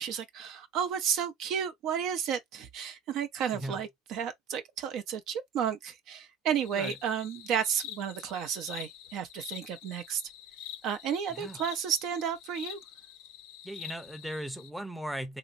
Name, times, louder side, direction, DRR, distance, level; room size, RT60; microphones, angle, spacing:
voice 1, 0.0-10.2 10.8-12.8, right 8 dB, 60° right, 0.6 m, -32 dB
sound 1, 6.6-14.7, left 11 dB, 75° left, 0.6 m, -46 dB
voice 2, 13.6-15.4, right 1 dB, 5° right, 0.6 m, -38 dB
3.1 x 2.8 x 2.6 m
supercardioid pair, 95°, 0 cm